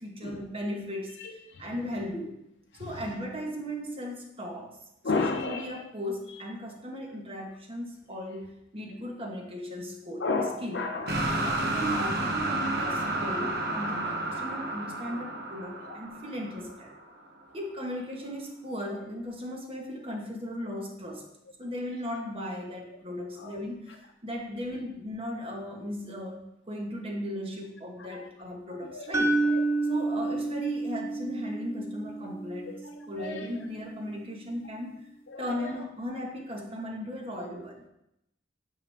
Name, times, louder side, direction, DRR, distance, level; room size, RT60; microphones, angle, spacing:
voice 1, 0.0-2.4 2.8-4.8 5.1-10.8 11.3-16.9 17.5-21.3 21.6-29.4 29.9-32.8 33.1-34.9 35.4-37.8, equal, 30° right, 1 dB, 1.2 m, -37 dB
voice 2, 1.2-1.6 5.0-5.8 10.2-11.3 15.8-16.0 23.4-23.6 28.1-28.3 28.8-29.2 29.4-29.6 32.7-32.8 33.1-33.6 35.3-35.8, left 3 dB, 75° left, 3 dB, 0.7 m, -33 dB
sound 1, 11.1-17.1, right 2 dB, 65° right, 1.0 m, -31 dB
sound 2, 29.1-33.2, right 3 dB, 15° right, 0.5 m, -29 dB
9.1 x 4.9 x 3.4 m, 0.81 s
head